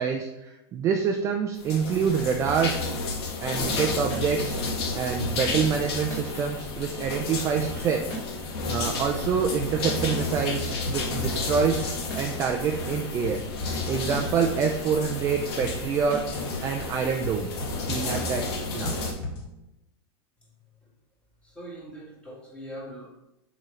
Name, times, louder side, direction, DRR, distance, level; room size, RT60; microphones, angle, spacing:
voice 1, 0.0-2.8 3.4-4.6 4.9-8.1 8.7-13.4 13.9-16.3 16.6-17.5 17.9-19.0, right 6 dB, 20° right, 3 dB, 0.4 m, -26 dB
sound 1, 1.6-19.1, left 3 dB, 75° left, 1.6 m, -31 dB
sound 2, 3.6-19.6, equal, 50° left, 2.1 m, -38 dB
voice 2, 21.4-23.1, right 1 dB, 10° left, -4 dB, 1.8 m, -42 dB
6.3 x 5.0 x 3.2 m, 0.91 s
supercardioid pair, 155°, 14 cm